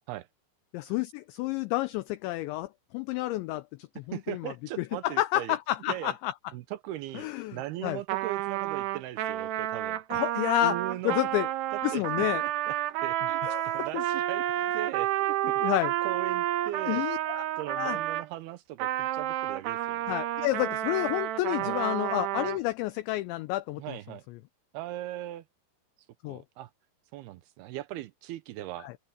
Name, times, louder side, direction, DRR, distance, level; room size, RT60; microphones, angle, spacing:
voice 1, 0.7-6.3 7.1-8.0 10.1-10.8 11.0-11.5 11.8-12.4 13.4-14.0 15.4-15.9 16.9-18.0 20.1-24.0 24.3-24.4 26.2-26.4 28.8-28.9, left 17 dB, 80° left, 2.7 m, -30 dB
voice 2, 4.1-5.6 5.9-6.1 6.5-10.0 10.6-11.2 11.9-12.3 12.7-12.8 13.0-14.5 14.7-17.0 17.6-20.0 21.6-21.8 23.8-24.2 24.7-25.4 26.2-26.7 27.1-28.9, right 14 dB, 90° right, 2.2 m, -39 dB
Trumpet, 8.1-18.3 18.8-22.6, right 13 dB, 75° right, 2.8 m, -30 dB
open air
omnidirectional pair, 5.8 m